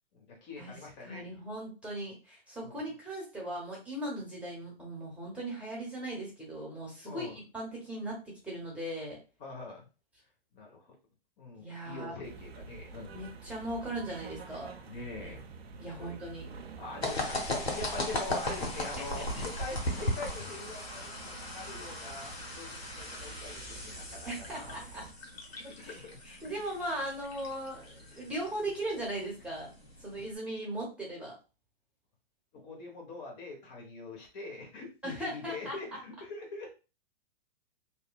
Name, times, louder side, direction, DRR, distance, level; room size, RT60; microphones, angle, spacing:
voice 1, 0.1-1.3 2.6-2.9 7.1-7.4 9.4-9.9 10.5-10.9 11.4-13.3 14.9-15.4 15.7-24.8 25.6-26.5 32.5-36.7, left 3 dB, 45° left, 1 dB, 1.0 m, -44 dB
voice 2, 1.0-8.2 8.4-9.2 11.6-12.1 13.1-14.7 15.8-16.5 19.0-19.4 24.2-25.1 25.5-26.0 26.2-29.7 30.0-31.3 35.0-35.8, right 1 dB, 5° right, -4 dB, 0.8 m, -38 dB
sound 1, 12.2-25.1, right 4 dB, 85° right, 0.5 m, -48 dB
sound 2, 17.0-30.3, left 1 dB, 90° left, 0.9 m, -38 dB
2.9 x 2.2 x 2.2 m, 0.32 s
hypercardioid pair, 110°, 30 cm